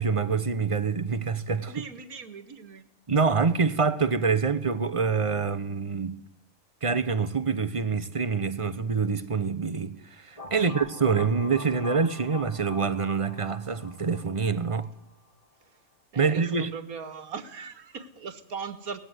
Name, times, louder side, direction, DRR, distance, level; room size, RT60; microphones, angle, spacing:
voice 1, 0.0-1.7 3.1-6.2 6.8-14.9 16.2-16.7, right 5 dB, 25° right, 0.8 m, -26 dB
voice 2, 1.7-2.8 10.6-10.8 15.6-15.8 16.1-19.0, right 6 dB, 75° right, 2.0 m, -39 dB
sound 1, 10.4-15.1, left 2 dB, 25° left, 2.1 m, -43 dB
19.0 x 15.0 x 9.5 m
omnidirectional pair, 1.6 m